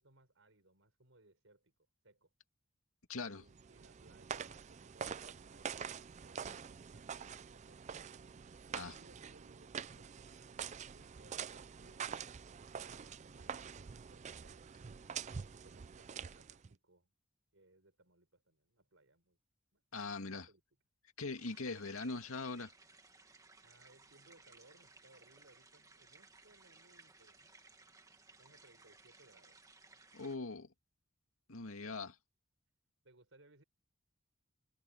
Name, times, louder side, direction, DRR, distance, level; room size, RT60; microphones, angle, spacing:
voice 1, 0.0-1.7 2.0-2.3 3.2-7.8 8.6-10.6 10.9-12.1 12.8-14.7 15.2-17.1 17.5-19.4 19.7-19.8 20.1-20.6 23.6-27.5 28.4-29.6 31.6-31.8 33.0-33.6, right 2 dB, 65° right, 5.3 m, -66 dB
voice 2, 3.1-3.4 8.7-9.0 19.9-20.5 21.2-22.7 30.1-30.7 31.5-32.1, left 3 dB, 85° left, 2.2 m, -41 dB
sound 1, 3.4-16.7, right 7 dB, 35° right, 0.4 m, -46 dB
sound 2, 21.4-30.4, right 3 dB, 15° right, 1.8 m, -62 dB
head